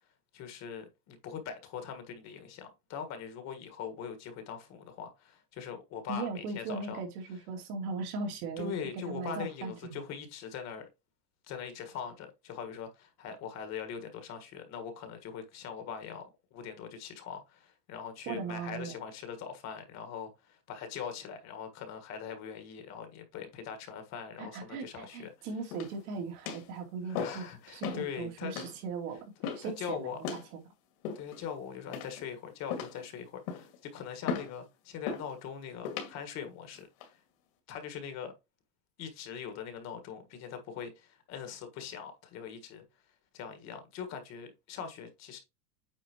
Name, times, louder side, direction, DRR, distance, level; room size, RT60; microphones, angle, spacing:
voice 1, 0.3-7.0 8.6-10.9 11.4-25.5 27.1-28.5 29.6-30.2 31.1-37.1 37.7-38.3 39.0-42.8 43.3-45.4, left 7 dB, 35° left, 1.6 m, -42 dB
voice 2, 6.1-10.0 18.3-18.9 24.4-29.2 29.5-30.6, right 4 dB, 65° right, 2.7 m, -38 dB
sound 1, 25.7-26.1 26.5-26.7 27.1-27.5 27.8-28.1 28.5-28.7 29.4-29.7 30.2-30.5 31.0-31.5 31.9-32.3 32.7-33.0 33.5-33.8 34.3-34.5 35.1-35.3 35.8-36.1 36.8-37.1, left 6 dB, 55° left, 2.4 m, -37 dB
8.9 x 4.5 x 3.0 m
supercardioid pair, 150°, 47 cm